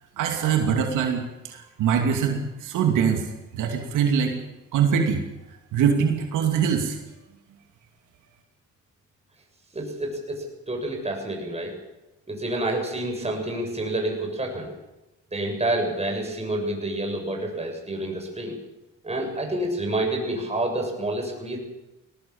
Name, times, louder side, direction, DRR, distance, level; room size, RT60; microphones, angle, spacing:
voice 1, 0.2-3.2 3.5-4.3 4.7-5.2 5.7-7.0, right 7 dB, 90° right, 3 dB, 2.8 m, -23 dB
voice 2, 9.7-11.7 12.3-14.7 15.3-18.6 19.0-21.6, right 1 dB, 20° right, 2 dB, 7.2 m, -28 dB
21.0 x 18.5 x 7.3 m, 0.99 s
cardioid pair, 90°, 30 cm